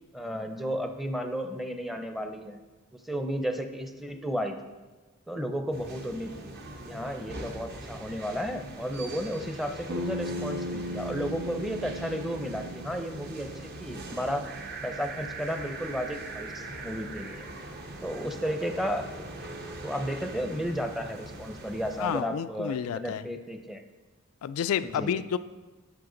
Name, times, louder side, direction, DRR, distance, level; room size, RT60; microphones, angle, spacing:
voice 1, 0.1-2.6 2.9-4.7 5.3-6.5 6.8-13.5 13.8-14.4 14.8-17.4 18.0-19.1 19.8-23.8 24.8-25.2, equal, ahead, 5 dB, 0.6 m, -33 dB
sound 1, 5.7-22.2, right 2 dB, 50° right, 1.0 m, -41 dB
Bass guitar, 9.9-14.2, equal, 80° right, 1.0 m, -37 dB
voice 2, 22.0-23.2 24.4-25.4, left 8 dB, 80° left, 12 dB, 0.3 m, -30 dB
10.5 x 6.4 x 3.9 m, 1.2 s
head